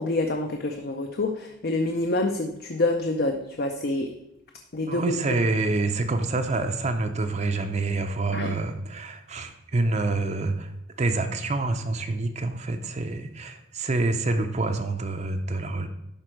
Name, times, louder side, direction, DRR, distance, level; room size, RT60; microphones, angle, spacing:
voice 1, 0.0-4.1 4.7-5.1 8.3-8.6, left 2 dB, 50° left, 4 dB, 0.6 m, -27 dB
voice 2, 4.9-10.7 11.0-15.9, right 2 dB, 35° right, 6 dB, 0.5 m, -27 dB
11.0 x 4.4 x 4.5 m, 0.86 s
head